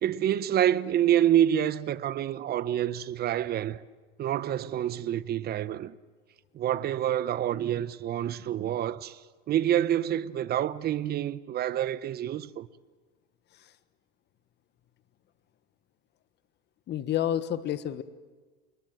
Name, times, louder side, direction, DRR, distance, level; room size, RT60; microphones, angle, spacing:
voice 1, 0.0-3.8 4.2-5.9 6.5-9.2 9.5-12.7, right 11 dB, 35° right, 0.9 m, -27 dB
voice 2, 16.9-18.0, left 11 dB, 35° left, 1.4 m, -29 dB
29.5 x 21.5 x 7.8 m
supercardioid pair, 120°, 29 cm